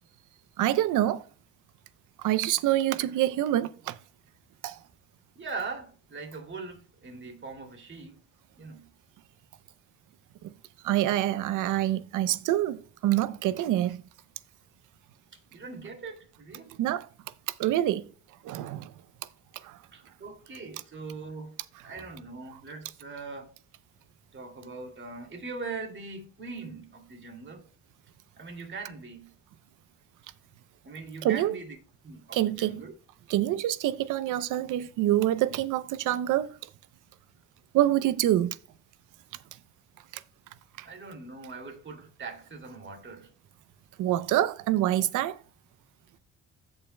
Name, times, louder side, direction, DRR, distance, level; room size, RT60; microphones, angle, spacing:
voice 1, 0.6-1.3 2.2-4.0 4.6-4.8 10.4-10.5 10.8-14.0 16.8-17.1 17.5-18.0 18.4-18.9 19.6-19.8 31.2-31.5 32.3-32.8 33.3-36.6 37.7-38.6 40.1-40.2 40.8-40.9 44.0-45.4, right 13 dB, 90° right, 0.7 m, -26 dB
voice 2, 5.3-8.2 8.6-8.9 15.5-16.8 19.9-21.5 21.8-23.5 24.3-27.6 28.4-29.3 30.8-31.8 32.0-32.9 40.8-43.3, right 4 dB, 40° right, 2.6 m, -41 dB
15.5 x 5.4 x 2.2 m
cardioid pair, 90°, 30 cm